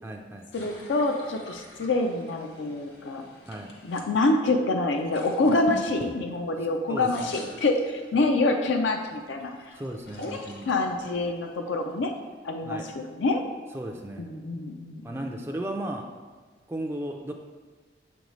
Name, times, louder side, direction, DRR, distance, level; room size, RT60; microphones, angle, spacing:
voice 1, 0.0-0.5 3.5-3.7 6.9-7.1 9.7-10.7 12.6-12.9 13.7-14.3 15.0-16.1 16.7-17.3, right 1 dB, 15° right, 1 dB, 0.3 m, -35 dB
voice 2, 0.5-3.2 3.8-9.8 10.2-10.4 10.7-12.1 12.4-13.4 14.2-15.2, left 2 dB, 85° left, 4 dB, 0.5 m, -26 dB
sound 1, 0.5-4.1 4.9-6.6 6.9-8.4 8.9-12.3, left 1 dB, 65° left, 0.9 m, -44 dB
7.0 x 5.2 x 3.1 m, 1.4 s
head